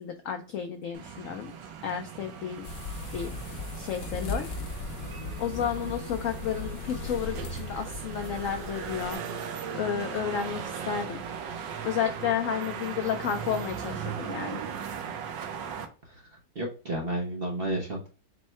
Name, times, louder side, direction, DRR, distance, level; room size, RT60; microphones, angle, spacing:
voice 1, 0.0-1.5 1.8-2.7 3.1-4.5 5.4-9.2 9.7-11.2 11.8-14.6, left 8 dB, 85° left, 6 dB, 0.7 m, -32 dB
sound 1, 0.9-15.9, right 7 dB, 85° right, 1.3 m, -38 dB
sound 2, 2.6-9.2, left 3 dB, 60° left, 1.1 m, -38 dB
voice 2, 5.6-6.0 16.0-16.3 16.5-18.1, right 1 dB, 55° right, -2 dB, 0.6 m, -32 dB
4.5 x 2.1 x 4.2 m, 0.37 s
omnidirectional pair, 1.9 m